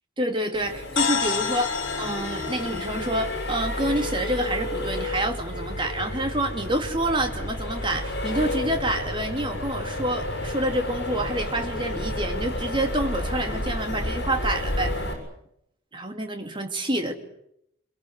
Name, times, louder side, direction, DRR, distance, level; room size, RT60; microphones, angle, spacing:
voice 1, 0.2-14.9 15.9-17.1, right 1 dB, 25° right, 5 dB, 2.4 m, -28 dB
Accelerating revving vroom, 0.5-15.1, left 1 dB, 50° left, 7.0 m, -31 dB
sound 1, 1.0-4.9, left 6 dB, 70° left, 3.8 m, -31 dB
25.5 x 22.5 x 8.2 m, 0.76 s
head